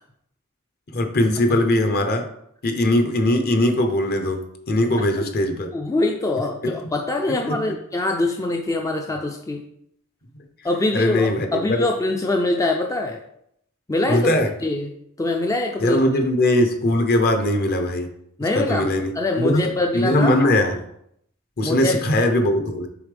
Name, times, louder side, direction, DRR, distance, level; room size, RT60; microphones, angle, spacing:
voice 1, 0.9-2.2 2.6-5.7 6.6-6.9 7.5-7.6 10.9-11.8 14.1-14.5 15.8-18.1 18.5-19.6 19.9-20.8 21.6-22.9, left 1 dB, 45° left, 6 dB, 0.9 m, -20 dB
voice 2, 5.0-5.3 5.7-9.6 10.6-13.2 13.9-14.3 14.6-16.0 18.4-20.5 21.6-21.9, left 2 dB, 15° left, 2 dB, 0.4 m, -24 dB
7.0 x 4.1 x 3.4 m, 0.72 s
head